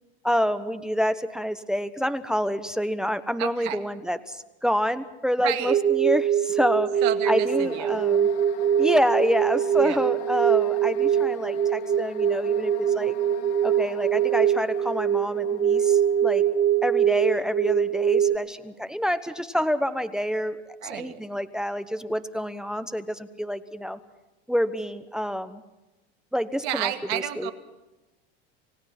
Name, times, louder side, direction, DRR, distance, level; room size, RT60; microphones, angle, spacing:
voice 1, 0.2-6.9 7.3-8.3 8.8-13.1 13.6-16.4 16.8-24.0 24.5-25.6 26.3-27.5, equal, ahead, 10 dB, 1.1 m, -27 dB
voice 2, 3.4-3.8 5.4-5.8 7.0-8.0 9.8-10.0 20.8-21.3 26.6-27.5, right 13 dB, 60° right, 7 dB, 2.2 m, -31 dB
sound 1, 5.7-18.4, right 9 dB, 20° right, 0.6 m, -23 dB
sound 2, 7.2-19.1, left 11 dB, 75° left, 2.0 m, -44 dB
29.0 x 17.0 x 6.0 m, 1.0 s
hypercardioid pair, 95°, 31 cm